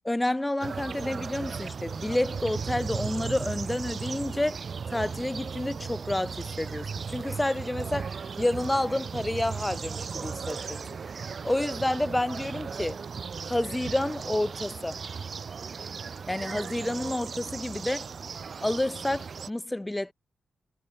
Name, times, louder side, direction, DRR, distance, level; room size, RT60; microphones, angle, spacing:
voice 1, 0.0-4.6 4.9-8.1 8.4-10.8 11.4-13.0 13.4-15.0 16.3-18.1 18.6-20.1, left 1 dB, 15° left, 1.1 m, -29 dB
sound 1, 0.6-19.5, right 5 dB, 60° right, 1.5 m, -36 dB
cardioid pair, 50°, 0 cm